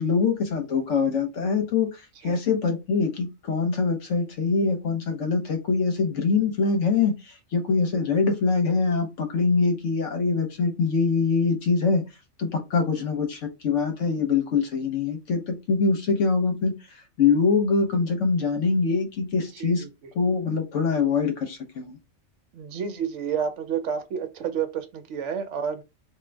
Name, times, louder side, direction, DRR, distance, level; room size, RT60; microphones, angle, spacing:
voice 1, 0.0-12.0 12.4-16.7 17.2-19.8 20.2-22.0, left 4 dB, 65° left, 1.1 m, -24 dB
voice 2, 19.5-19.9 22.5-25.8, right 7 dB, 70° right, 0.9 m, -30 dB
3.7 x 2.5 x 3.3 m
omnidirectional pair, 1.4 m